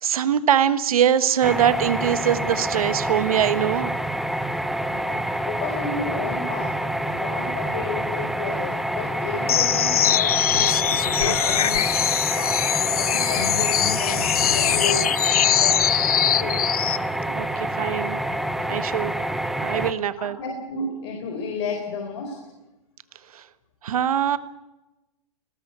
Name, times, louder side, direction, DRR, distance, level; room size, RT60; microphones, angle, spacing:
voice 1, 0.0-3.9 17.3-18.2 18.7-19.2 19.6-20.4 23.3-23.5 23.8-24.4, right 9 dB, 75° right, 12 dB, 1.5 m, -22 dB
sound 1, 1.4-19.9, right 1 dB, ahead, 0.9 m, -27 dB
voice 2, 4.9-11.9 12.4-16.6 20.2-22.5, left 4 dB, 50° left, 4 dB, 4.2 m, -32 dB
sound 2, 9.5-17.0, left 10 dB, 85° left, 0.7 m, -22 dB
20.0 x 18.5 x 8.2 m, 1.0 s
hypercardioid pair, 145°, 18 cm